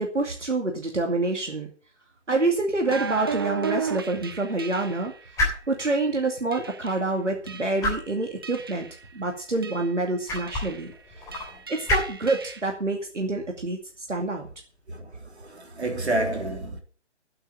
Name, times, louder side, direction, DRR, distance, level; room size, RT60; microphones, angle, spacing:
voice 1, 0.0-1.7 2.3-8.9 9.1-10.9 11.2-11.3 11.7-13.8 14.1-14.5, right 2 dB, 85° right, 2.6 m, -27 dB
sound 1, 2.3-15.9, left 1 dB, 10° left, 3.4 m, -35 dB
sound 2, 2.9-5.2 5.8-6.0 6.5-7.0 7.5-7.9 8.4-9.0 9.6-9.9 10.3-10.9 11.3-12.6, right 6 dB, 20° right, 0.6 m, -34 dB
voice 2, 14.9-16.8, right 1 dB, 65° right, 3.4 m, -29 dB
8.7 x 8.0 x 8.9 m
figure-of-eight pair, 145°, 35 cm